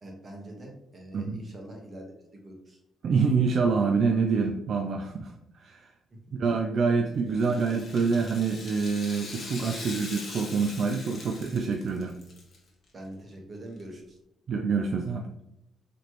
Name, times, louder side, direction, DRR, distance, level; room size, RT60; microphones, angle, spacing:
voice 1, 0.0-2.1 2.4-2.8 7.2-7.6 9.7-9.9 12.9-14.2, right 1 dB, 35° right, 1 dB, 1.3 m, -44 dB
voice 2, 1.1-1.4 3.0-5.9 6.4-12.1 14.5-15.2, right 5 dB, 55° right, 3 dB, 0.4 m, -26 dB
Rattle (instrument), 7.3-12.6 12.9-13.0 13.8-13.9, left 3 dB, 50° left, 1.1 m, -42 dB
4.2 x 3.1 x 3.0 m, 0.84 s
cardioid pair, 90°, 0 cm